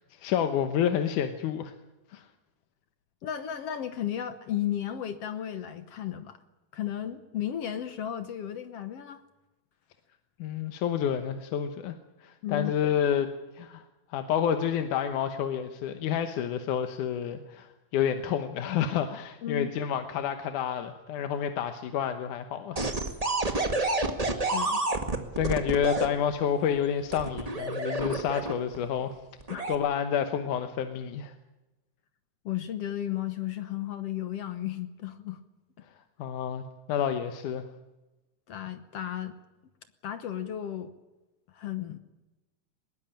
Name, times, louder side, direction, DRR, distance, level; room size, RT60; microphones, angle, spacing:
voice 1, 0.1-1.7 2.1-2.3 10.4-11.9 12.2-13.8 14.1-22.8 25.4-29.2 29.7-31.3 36.2-37.7, left 8 dB, 80° left, 8 dB, 2.6 m, -29 dB
voice 2, 3.2-6.4 6.7-9.2 12.4-12.7 19.4-19.7 24.3-24.8 29.5-29.7 32.5-35.4 38.5-39.4 40.0-40.9 41.5-42.0, left 11 dB, 60° left, 10 dB, 1.9 m, -34 dB
sound 1, 22.8-26.1 27.1-28.8 29.4-29.8, right 2 dB, 20° right, 1.1 m, -29 dB
21.0 x 19.0 x 9.0 m, 1.1 s
omnidirectional pair, 3.6 m